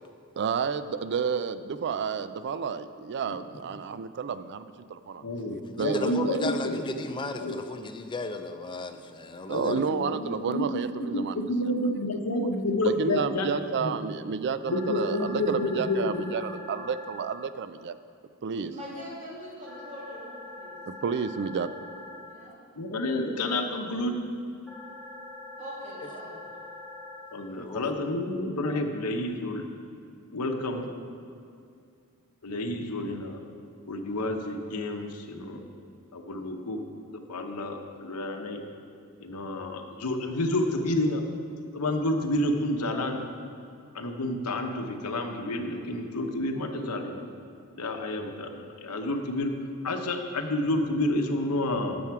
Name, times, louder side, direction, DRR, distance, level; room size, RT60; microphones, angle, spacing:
voice 1, 0.4-5.2 5.8-6.4 9.5-11.4 12.8-17.9 18.4-18.7 20.9-21.7, right 6 dB, 50° right, 13 dB, 0.4 m, -30 dB
voice 2, 5.2-6.8 7.4-7.6 9.5-14.0 14.7-16.3 22.8-24.1 27.3-29.6 30.3-30.9 32.4-33.4 33.8-35.6 36.1-36.8 37.1-38.6 39.2-41.2 41.7-43.2 43.9-47.3 47.8-49.5 49.8-52.0, left 1 dB, 85° left, 4 dB, 0.9 m, -30 dB
voice 3, 5.7-10.2 27.6-27.9, left 3 dB, 20° left, 7 dB, 0.5 m, -35 dB
sound 1, 14.7-17.2 19.7-22.2 24.7-27.2, left 2 dB, 5° left, 2.0 m, -43 dB
voice 4, 18.7-20.8 22.3-22.5 25.6-26.4, equal, 35° right, -6 dB, 2.6 m, -42 dB
10.5 x 7.1 x 4.7 m, 2.4 s
head